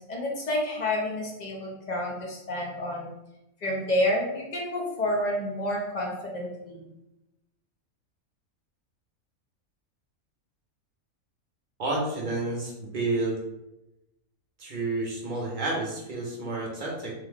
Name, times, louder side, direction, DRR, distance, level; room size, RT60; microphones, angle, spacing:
voice 1, 0.0-3.1 3.6-6.9, left 1 dB, 35° left, -3 dB, 0.8 m, -29 dB
voice 2, 11.8-13.4 14.6-17.1, right 2 dB, 45° right, -3 dB, 0.8 m, -30 dB
3.4 x 2.2 x 3.5 m, 0.91 s
omnidirectional pair, 1.5 m